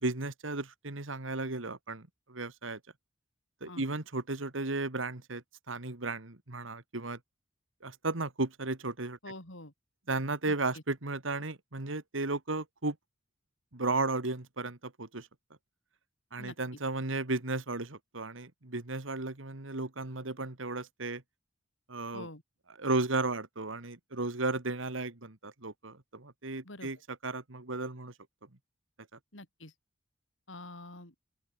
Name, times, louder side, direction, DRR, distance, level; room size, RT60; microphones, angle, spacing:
voice 1, 0.0-2.8 3.6-7.2 7.8-9.2 10.1-13.0 13.7-15.3 16.3-21.2 21.9-22.3 22.8-27.0 27.2-28.1, right 3 dB, 85° right, 2.1 m, -34 dB
voice 2, 9.2-9.7 10.4-10.8 16.4-16.8 22.1-22.4 26.6-26.9 29.3-29.7 30.5-31.1, left 2 dB, 75° left, 7.2 m, -46 dB
open air
head